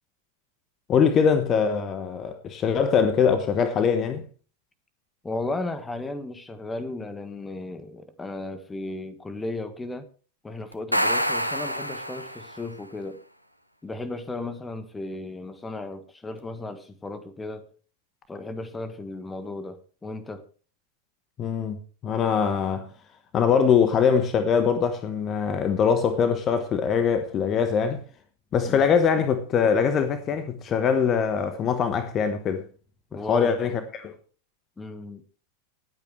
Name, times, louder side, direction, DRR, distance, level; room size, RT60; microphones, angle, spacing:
voice 1, 0.9-4.2 21.4-21.8 22.0-22.9 23.3-28.0 28.5-32.6 33.1-34.1, left 6 dB, 30° left, 1.2 m, -22 dB
voice 2, 5.2-10.1 10.4-13.2 13.8-17.7 18.3-20.4 28.6-28.9 33.1-33.6 34.8-35.2, left 2 dB, 10° left, 1.5 m, -35 dB
sound 1, 10.7-12.7, equal, 90° left, 1.1 m, -27 dB
19.5 x 8.5 x 3.2 m
figure-of-eight pair, 90°, 0 cm